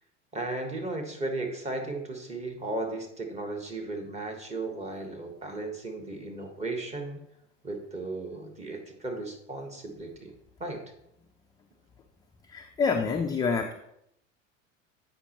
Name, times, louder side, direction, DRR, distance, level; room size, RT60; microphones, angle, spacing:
voice 1, 0.3-7.2 7.6-10.3 10.6-10.8, right 2 dB, 15° right, 3 dB, 1.4 m, -35 dB
voice 2, 12.4-13.7, left 5 dB, 10° left, 3 dB, 0.3 m, -27 dB
8.1 x 5.3 x 3.0 m, 0.76 s
hypercardioid pair, 85°, 39 cm